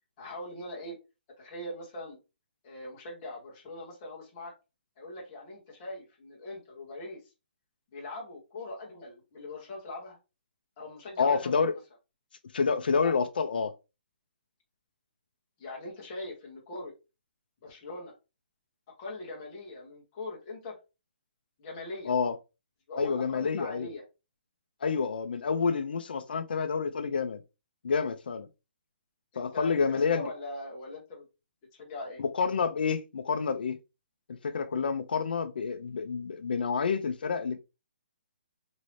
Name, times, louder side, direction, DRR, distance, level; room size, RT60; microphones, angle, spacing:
voice 1, 0.2-1.0 1.4-2.2 2.6-4.5 5.0-7.2 7.9-10.2 10.8-11.7 13.0-13.1 15.6-16.9 17.6-18.1 19.0-20.8 21.6-22.1 22.9-24.0 29.3-31.3 31.7-32.2, left 2 dB, 20° left, 0.9 m, -41 dB
voice 2, 11.2-11.8 12.5-13.7 22.1-22.4 23.0-23.9 24.8-27.4 27.8-28.5 29.4-30.3 32.2-33.8 34.3-37.6, left 5 dB, 60° left, 0.4 m, -28 dB
3.1 x 2.6 x 3.1 m
hypercardioid pair, 180°, 6 cm